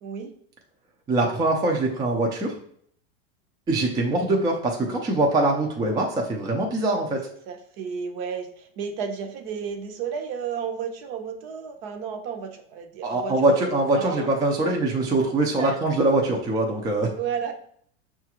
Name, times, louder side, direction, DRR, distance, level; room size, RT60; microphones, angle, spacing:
voice 1, 0.0-0.3 7.5-14.3 14.6-14.7 15.6-15.8 17.2-17.5, right 7 dB, 50° right, 5 dB, 0.7 m, -33 dB
voice 2, 1.1-2.5 3.7-7.3 13.0-17.1, right 2 dB, 10° right, 0 dB, 0.4 m, -23 dB
5.7 x 2.4 x 2.9 m, 0.63 s
supercardioid pair, 135°, 32 cm